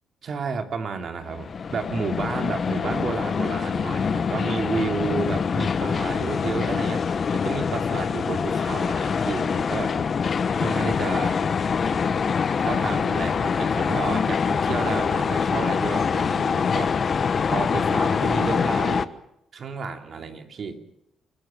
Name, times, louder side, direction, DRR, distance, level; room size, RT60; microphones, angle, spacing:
voice 1, 0.2-7.0 7.3-10.0 10.6-11.4 12.6-17.0 17.5-19.1 19.5-20.8, right 5 dB, 55° right, 6 dB, 3.0 m, -31 dB
sound 1, 1.2-19.1, left 6 dB, 45° left, 1.2 m, -24 dB
29.0 x 15.0 x 7.5 m, 0.80 s
cardioid pair, 90°, 0 cm